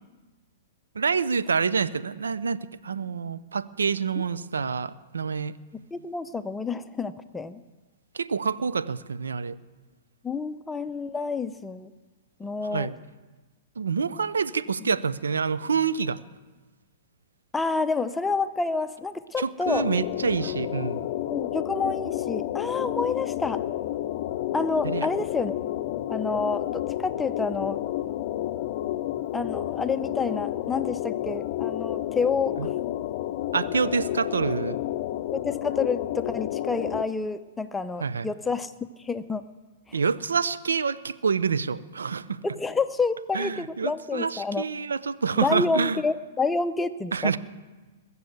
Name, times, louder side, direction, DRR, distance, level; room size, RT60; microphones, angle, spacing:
voice 1, 0.9-5.5 8.1-9.6 12.7-13.0 13.8-16.2 19.4-21.1 24.8-25.1 32.6-32.7 33.5-34.8 38.0-38.3 39.9-42.4 43.3-46.0 47.1-47.4, right 5 dB, 85° right, 15 dB, 0.7 m, -27 dB
voice 2, 5.9-7.6 10.2-11.9 12.4-12.9 17.5-19.9 21.3-23.6 24.5-25.5 26.1-27.8 29.3-32.7 35.3-39.4 39.9-40.0 42.4-44.6 45.4-47.4, left 4 dB, 10° left, 11 dB, 0.7 m, -29 dB
sound 1, 19.7-37.0, left 13 dB, 50° left, 0.6 m, -30 dB
21.0 x 7.1 x 8.0 m, 1.3 s
hypercardioid pair, 115°, 0 cm